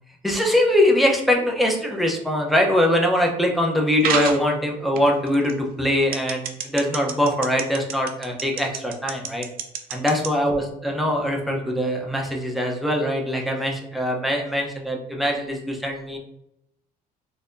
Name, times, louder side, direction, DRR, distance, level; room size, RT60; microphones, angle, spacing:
voice 1, 0.2-9.5 9.9-16.2, left 1 dB, ahead, 0 dB, 0.7 m, -22 dB
sound 1, 4.0-4.4 5.0-5.5 6.1-10.3, right 7 dB, 60° right, 0.5 m, -27 dB
4.1 x 2.8 x 2.6 m, 0.79 s
cardioid pair, 110°, 17 cm